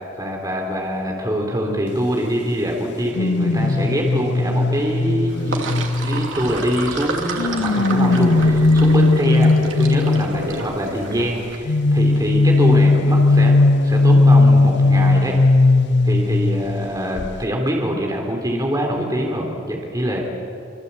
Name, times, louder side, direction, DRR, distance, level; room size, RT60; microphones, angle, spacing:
voice 1, 0.2-5.6 5.9-13.5 13.8-15.4 16.0-20.2, equal, 20° right, 0 dB, 3.7 m, -24 dB
sound 1, 3.1-6.8 7.4-10.6 11.7-16.9 17.2-17.4, left 2 dB, 60° left, 0.6 m, -17 dB
Sink (filling or washing), 5.3-11.6, right 2 dB, 75° right, 2.9 m, -29 dB
26.5 x 26.5 x 8.6 m, 2.6 s
head